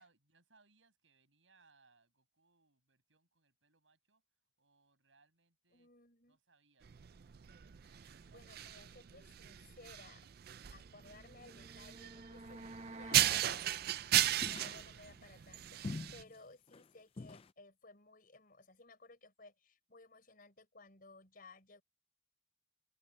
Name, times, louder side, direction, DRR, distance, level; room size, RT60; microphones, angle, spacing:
voice 1, 0.0-4.2 4.6-5.9 6.3-6.9, right 4 dB, 75° right, 7.2 m, -71 dB
voice 2, 5.7-6.4 7.8-10.3 10.7-13.8 14.3-21.8, left 3 dB, 45° left, 5.5 m, -59 dB
sound 1, 6.8-16.2, right 13 dB, 50° right, 0.4 m, -36 dB
sound 2, 10.9-13.5, right 2 dB, 35° right, 1.3 m, -51 dB
sound 3, 13.1-13.7 14.4-15.2 15.8-16.4 16.7-16.9 17.2-17.5, left 3 dB, 30° left, 0.4 m, -46 dB
open air
head